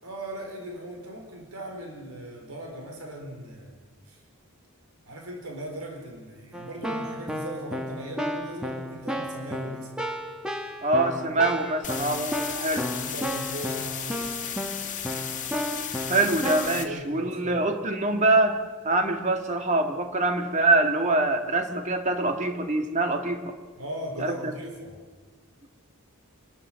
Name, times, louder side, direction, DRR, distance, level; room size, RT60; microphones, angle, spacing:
voice 1, 0.0-3.8 4.1-4.2 5.1-9.9 13.0-14.3 16.7-17.7 23.8-25.0, right 1 dB, 85° right, 2 dB, 4.7 m, -38 dB
Keyboard (musical), 6.5-16.8, equal, 5° right, 1.6 m, -33 dB
voice 2, 10.8-12.9 16.1-18.6 18.8-23.6 24.2-24.5, right 2 dB, 35° right, 5 dB, 2.1 m, -24 dB
sound 1, 11.8-16.8, left 9 dB, 35° left, 2.1 m, -34 dB
28.5 x 12.5 x 7.7 m, 1.4 s
head